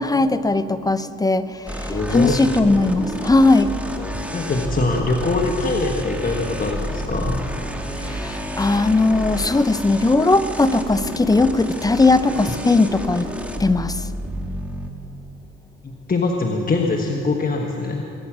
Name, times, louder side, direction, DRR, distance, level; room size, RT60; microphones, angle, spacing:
voice 1, 0.0-3.7 8.0-13.3 13.6-14.1, left 3 dB, 10° left, 12 dB, 0.6 m, -18 dB
sound 1, 1.7-14.9, equal, 5° right, 1.5 m, -30 dB
voice 2, 1.9-2.4 4.3-7.4 15.8-18.1, left 3 dB, 30° left, 1 dB, 1.3 m, -23 dB
23.0 x 9.9 x 6.2 m, 2.8 s
cardioid pair, 90°, 30 cm